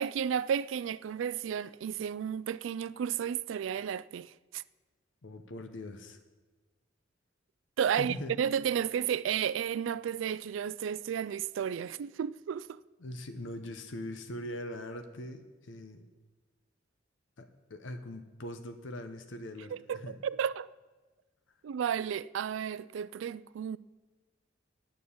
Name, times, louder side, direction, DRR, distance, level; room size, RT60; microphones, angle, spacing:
voice 1, 0.0-4.6 7.8-12.8 19.7-20.7 21.6-23.8, right 8 dB, 85° right, 0.3 m, -33 dB
voice 2, 5.2-6.2 8.0-8.4 11.8-11.9 13.0-16.1 17.4-20.1, left 1 dB, 80° left, 0.8 m, -41 dB
9.5 x 7.3 x 8.4 m
head